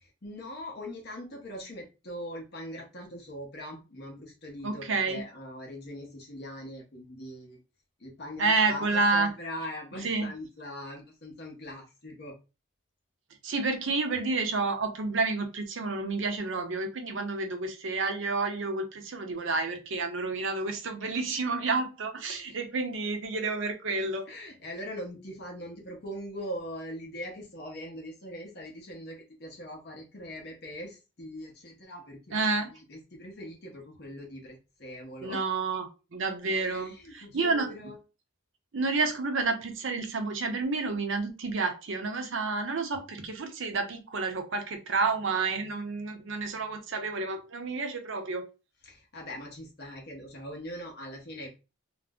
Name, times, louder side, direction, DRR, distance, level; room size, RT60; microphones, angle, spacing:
voice 1, 0.0-7.6 8.0-12.3 21.0-21.2 22.3-22.6 24.3-35.4 36.5-38.0 48.8-51.5, equal, 45° left, 1 dB, 0.7 m, -41 dB
voice 2, 4.6-5.2 8.4-9.3 10.0-10.3 13.4-24.3 32.3-32.7 35.2-37.7 38.7-48.5, right 3 dB, 55° right, 5 dB, 0.6 m, -30 dB
2.4 x 2.0 x 3.4 m, 0.30 s
head